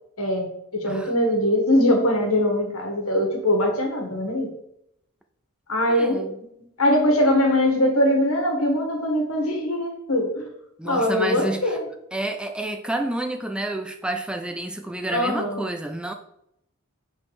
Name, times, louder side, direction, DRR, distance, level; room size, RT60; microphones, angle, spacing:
voice 1, 0.2-4.5 5.7-6.3 6.8-10.5 10.8-11.8 15.1-15.7, left 1 dB, 70° left, 2 dB, 1.7 m, -22 dB
voice 2, 5.9-6.4 10.8-11.8 12.1-16.1, right 1 dB, 5° right, 5 dB, 0.4 m, -29 dB
5.8 x 3.7 x 4.8 m, 0.77 s
head